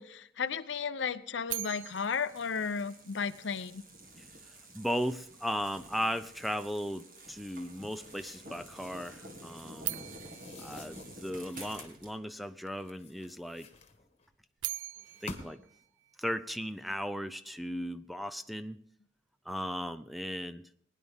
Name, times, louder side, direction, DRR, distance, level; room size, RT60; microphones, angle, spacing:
voice 1, 0.0-3.8, left 6 dB, 70° left, 13 dB, 0.7 m, -34 dB
sound 1, 1.5-3.6 9.8-12.0 14.3-16.7, right 17 dB, 70° right, 0.4 m, -42 dB
sound 2, 1.8-12.1, right 1 dB, 50° right, 2.0 m, -50 dB
voice 2, 4.2-10.1 10.6-13.7 15.2-15.6 16.2-18.8 19.5-20.6, equal, ahead, 12 dB, 0.4 m, -36 dB
sound 3, 7.6-9.3 10.2-12.0 12.7-14.3 14.9-15.7, left 2 dB, 35° left, 1.3 m, -50 dB
20.0 x 10.5 x 3.5 m, 0.64 s
head